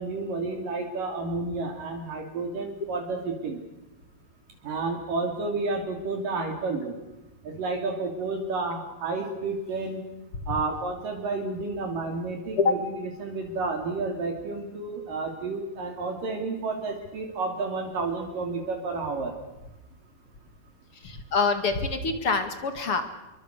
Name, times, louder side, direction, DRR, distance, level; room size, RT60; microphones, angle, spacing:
voice 1, 0.0-3.6 4.6-6.9 7.4-10.0 10.5-19.3, right 3 dB, 65° right, 3 dB, 4.6 m, -31 dB
voice 2, 21.0-23.1, left 4 dB, 45° left, 8 dB, 2.5 m, -25 dB
27.5 x 23.5 x 6.6 m, 1.0 s
omnidirectional pair, 4.2 m